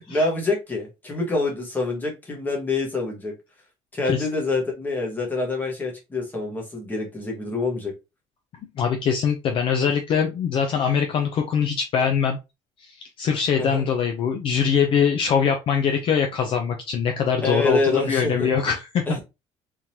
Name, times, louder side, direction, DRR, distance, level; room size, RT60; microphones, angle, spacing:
voice 1, 0.0-3.3 3.9-7.9 13.6-13.8 17.4-18.5 19.1-19.2, left 3 dB, 15° left, 1.2 m, -26 dB
voice 2, 8.8-12.4 12.8-19.2, left 7 dB, 45° left, 0.5 m, -23 dB
3.7 x 3.1 x 2.8 m
cardioid pair, 170°, 13 cm